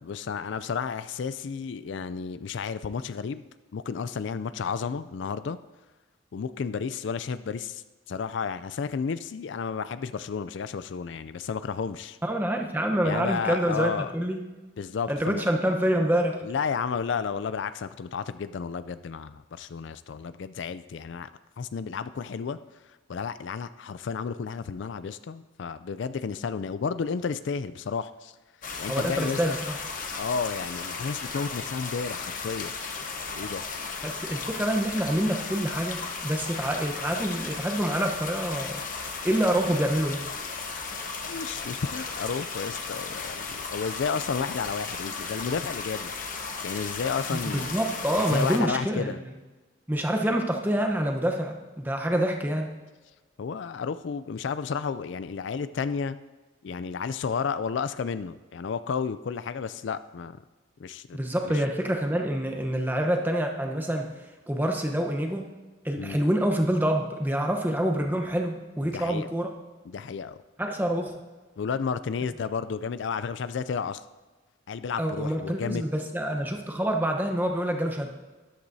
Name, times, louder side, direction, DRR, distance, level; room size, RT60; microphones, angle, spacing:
voice 1, 0.0-3.4 3.7-5.6 6.3-12.2 13.0-14.1 14.8-15.5 16.4-21.3 21.6-22.6 22.9-28.3 28.8-29.6 30.2-32.7 33.3-33.6 41.3-46.1 46.6-47.7 48.2-49.2 53.4-56.2 56.6-60.4 60.8-61.6 65.9-66.2 68.9-69.3 69.9-70.4 71.6-74.0 74.7-75.9, left 5 dB, 65° left, 13 dB, 0.4 m, -32 dB
voice 2, 12.2-14.4 15.1-16.4 28.9-29.8 34.0-38.8 39.2-40.2 47.3-49.1 49.9-52.7 61.1-64.1 64.5-65.5 65.8-69.5 70.6-71.2 75.0-78.2, right 1 dB, 10° right, 3 dB, 0.9 m, -27 dB
sound 1, 28.6-48.6, left 4 dB, 40° left, 1.0 m, -35 dB
13.5 x 11.5 x 2.7 m, 1.3 s
head